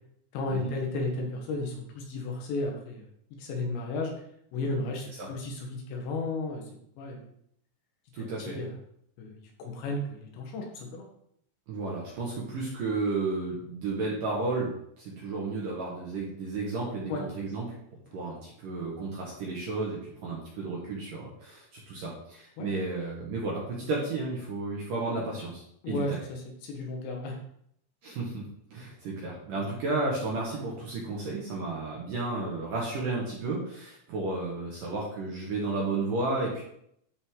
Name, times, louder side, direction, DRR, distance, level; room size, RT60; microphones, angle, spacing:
voice 1, 0.3-3.1 3.4-4.1 4.5-6.6 7.0-7.2 8.2-8.7 9.2-11.1 17.1-17.2 22.6-22.7 25.8-27.4, left 2 dB, 70° left, 1 dB, 3.3 m, -34 dB
voice 2, 8.1-8.6 11.7-17.7 18.1-26.2 28.0-28.4 28.7-36.6, right 3 dB, 60° right, -4 dB, 2.4 m, -33 dB
12.0 x 5.3 x 3.8 m, 0.71 s
omnidirectional pair, 5.7 m